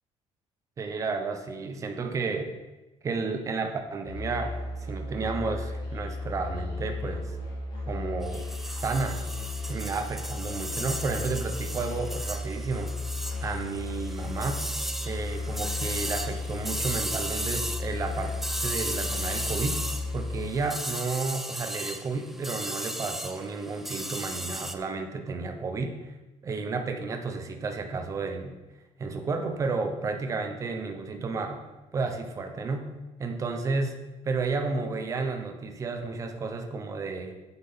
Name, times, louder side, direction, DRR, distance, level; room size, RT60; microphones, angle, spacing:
voice 1, 0.8-2.5 3.0-4.5 4.8-7.4 7.9-9.2 9.7-12.9 13.4-14.6 15.0-18.3 18.6-19.8 20.1-26.1 26.4-28.5 29.0-31.6 31.9-32.9 33.2-33.9 34.2-37.3, right 4 dB, 25° right, 6 dB, 0.8 m, -32 dB
Musical instrument, 4.0-20.5, left 3 dB, 40° left, 3.8 m, -35 dB
sound 1, 8.2-24.7, right 1 dB, ahead, 0.4 m, -36 dB
7.9 x 7.4 x 5.6 m, 1.1 s
cardioid pair, 170°, 12 cm